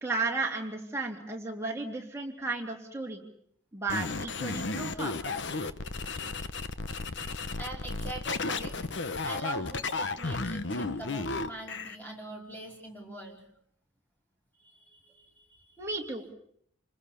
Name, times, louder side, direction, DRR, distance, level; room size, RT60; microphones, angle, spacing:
voice 1, 0.0-3.2 3.7-5.2 15.8-16.3, right 3 dB, 15° right, 0 dB, 3.2 m, -34 dB
sound 1, 3.9-12.0, left 3 dB, 60° left, 1.0 m, -34 dB
voice 2, 7.6-8.7 9.0-13.4 14.7-15.7, right 1 dB, 10° left, 0 dB, 4.8 m, -42 dB
28.5 x 20.5 x 7.1 m, 0.68 s
head